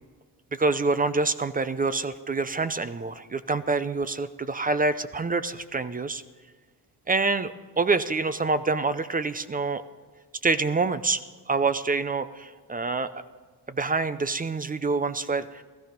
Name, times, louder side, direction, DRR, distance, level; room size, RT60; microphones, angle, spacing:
voice 1, 0.5-6.2 7.1-9.8 10.4-11.2 11.5-13.1 13.7-15.6, right 3 dB, 20° right, 13 dB, 0.5 m, -26 dB
16.5 x 14.0 x 5.2 m, 1.4 s
cardioid pair, 115°, 40 cm